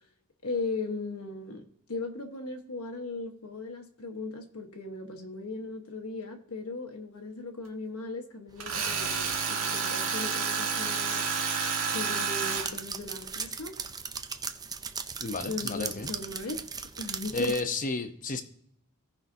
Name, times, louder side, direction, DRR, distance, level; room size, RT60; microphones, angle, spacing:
voice 1, 0.4-1.6 1.9-11.3 11.8-13.7 15.5-16.6 17.0-17.5, left 3 dB, 80° left, 3 dB, 1.3 m, -37 dB
sound 1, 8.5-9.4 12.5-17.6, right 6 dB, 15° right, 0.4 m, -38 dB
Tools, 8.6-12.7, right 5 dB, 70° right, 1.8 m, -30 dB
voice 2, 15.2-16.1 17.3-18.4, left 3 dB, 40° left, 7 dB, 0.8 m, -32 dB
17.0 x 5.8 x 2.7 m, 0.68 s
head